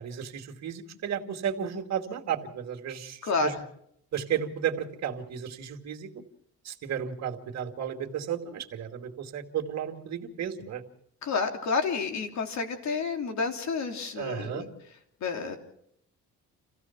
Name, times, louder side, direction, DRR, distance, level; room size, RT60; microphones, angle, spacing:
voice 1, 0.0-3.5 4.1-6.1 6.6-10.8 14.2-14.6, right 8 dB, 60° right, 3 dB, 2.5 m, -33 dB
voice 2, 3.2-3.6 11.2-14.7 15.2-15.6, left 4 dB, 65° left, 5 dB, 3.3 m, -30 dB
28.0 x 16.0 x 6.0 m, 0.70 s
cardioid pair, 90°, 30 cm